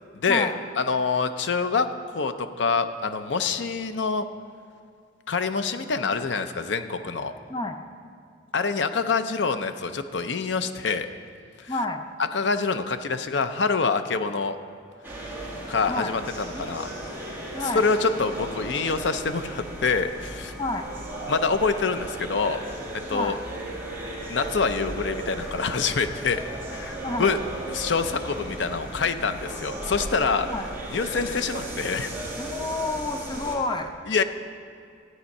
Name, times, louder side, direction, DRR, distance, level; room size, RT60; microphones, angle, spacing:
voice 1, 0.2-1.9 2.1-4.2 5.3-7.3 8.5-11.1 11.6-11.7 12.3-14.6 15.7-17.4 17.7-20.5 21.3-22.6 22.9-23.4 24.3-26.4 26.7-27.4 27.7-30.5 30.9-32.1 34.1-34.2, left 4 dB, 65° left, 9 dB, 0.6 m, -26 dB
voice 2, 7.5-7.8 11.7-12.0 15.9-16.1 16.5-16.6 17.5-17.8 20.6-20.9 23.1-23.4 27.0-27.3 30.4-30.6 32.4-33.9, left 2 dB, 25° left, 6 dB, 0.6 m, -29 dB
sound 1, 15.0-33.6, right 1 dB, 10° right, 2.2 m, -36 dB
13.0 x 9.4 x 5.4 m, 2.4 s
head